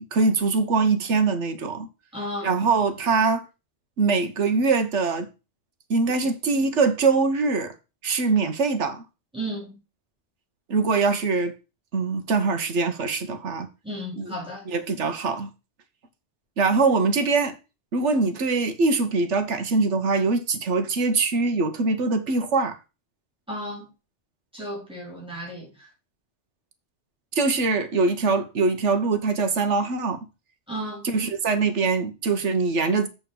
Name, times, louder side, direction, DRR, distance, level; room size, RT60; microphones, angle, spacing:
voice 1, 0.0-1.9 2.4-3.4 4.0-5.3 5.9-7.7 8.0-9.0 10.7-11.5 11.9-13.7 14.2-14.4 14.7-15.5 16.6-17.6 17.9-22.8 27.3-30.3 31.0-33.1, right 4 dB, 85° right, 1.4 m, -23 dB
voice 2, 2.1-2.5 9.3-9.8 13.8-14.6 23.5-23.9 24.5-25.9 30.7-31.0, equal, 5° right, 3.5 m, -34 dB
7.4 x 4.3 x 6.8 m
omnidirectional pair, 1.2 m